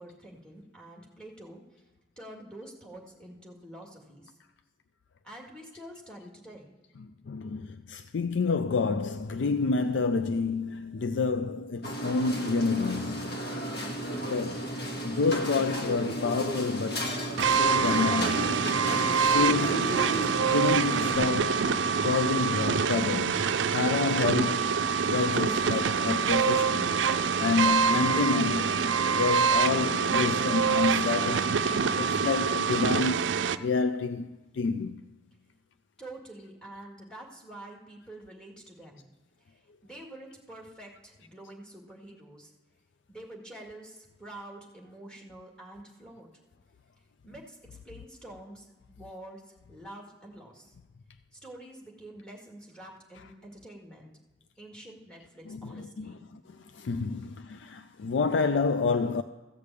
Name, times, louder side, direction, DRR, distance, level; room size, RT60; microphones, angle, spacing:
voice 1, 0.0-1.8 2.2-4.3 5.2-6.8 36.0-39.1 39.4-42.5 43.1-46.3 47.2-50.7 51.3-54.1 54.6-56.3, right 1 dB, 5° left, 1.9 m, -47 dB
voice 2, 7.3-13.4 14.3-14.7 15.0-17.1 17.4-18.6 19.2-20.0 20.5-21.7 22.0-24.7 25.1-26.9 27.4-28.7 29.1-31.7 32.0-33.3 33.6-34.3 34.5-35.0 55.5-56.4 56.7-59.2, left 4 dB, 75° left, 0.4 m, -28 dB
sound 1, 11.8-21.2, right 1 dB, 60° left, 1.8 m, -33 dB
sound 2, 17.4-33.6, right 5 dB, 80° right, 0.4 m, -26 dB
14.5 x 5.1 x 8.3 m
head